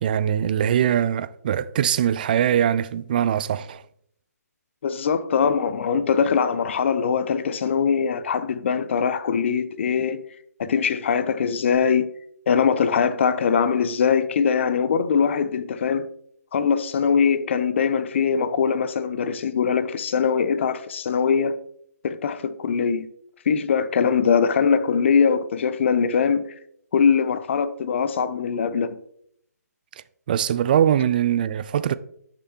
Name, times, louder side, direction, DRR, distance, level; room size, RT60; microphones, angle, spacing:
voice 1, 0.0-3.8 30.3-31.9, right 9 dB, 30° right, 0.3 m, -22 dB
voice 2, 4.8-10.2 10.6-12.1 12.5-16.0 16.5-21.5 22.0-23.1 23.5-26.5 26.9-28.9, left 6 dB, 45° left, 0.6 m, -22 dB
8.9 x 6.7 x 2.9 m
figure-of-eight pair, 145°, 9 cm